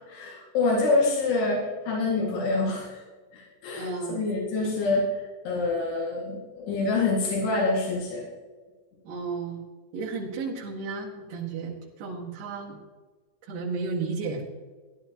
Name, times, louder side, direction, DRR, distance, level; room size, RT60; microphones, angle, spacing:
voice 1, 0.1-3.0 3.3-5.0 5.5-8.2, left 3 dB, 85° left, -3 dB, 4.3 m, -26 dB
voice 2, 3.8-4.2 9.1-9.6 9.9-12.8 13.5-14.4, right 4 dB, 75° right, -5 dB, 3.7 m, -33 dB
16.5 x 11.5 x 2.9 m, 1.4 s
omnidirectional pair, 4.7 m